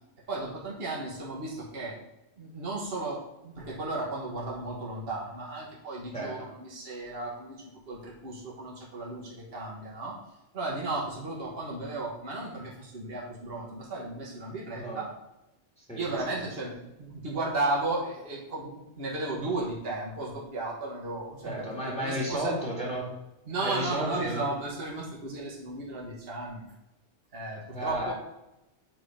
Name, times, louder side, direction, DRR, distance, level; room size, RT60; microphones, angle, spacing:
voice 1, 0.3-2.0 2.4-10.2 10.5-15.0 16.0-21.5 22.0-22.6 23.5-26.6 27.3-28.1, right 2 dB, 55° right, -3 dB, 1.6 m, -34 dB
voice 2, 6.1-6.5 14.7-15.0 15.8-16.0 16.3-16.4 21.4-23.1 23.6-24.4 27.7-28.1, right 1 dB, 5° left, -3 dB, 1.9 m, -33 dB
7.7 x 3.9 x 5.0 m, 0.93 s
omnidirectional pair, 1.2 m